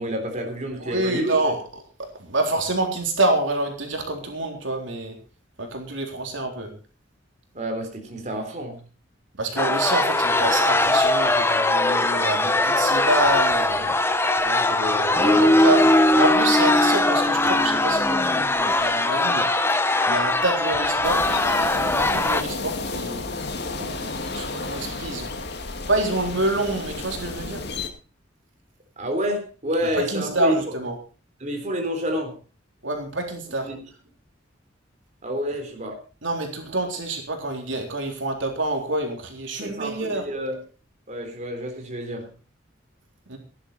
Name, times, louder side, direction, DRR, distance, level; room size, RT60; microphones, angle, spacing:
voice 1, 0.0-1.5 7.5-8.8 14.4-15.5 23.8-24.1 29.0-30.6 31.4-32.3 33.6-33.8 35.2-36.0 39.6-40.6 41.1-42.3, equal, 40° right, 3 dB, 3.7 m, -29 dB
voice 2, 0.8-1.6 2.2-5.2 5.6-6.7 9.4-13.9 15.2-15.9 16.1-19.5 20.1-21.3 21.8-23.2 24.3-25.3 25.9-27.6 29.9-31.0 32.8-33.7 36.2-40.2 43.3-43.4, right 2 dB, 75° right, 2 dB, 3.9 m, -27 dB
sound 1, 9.6-22.4, left 2 dB, 15° left, 0.9 m, -20 dB
sound 2, 21.0-27.9, left 3 dB, 60° left, 2.3 m, -32 dB
17.5 x 11.5 x 4.3 m, 0.34 s
head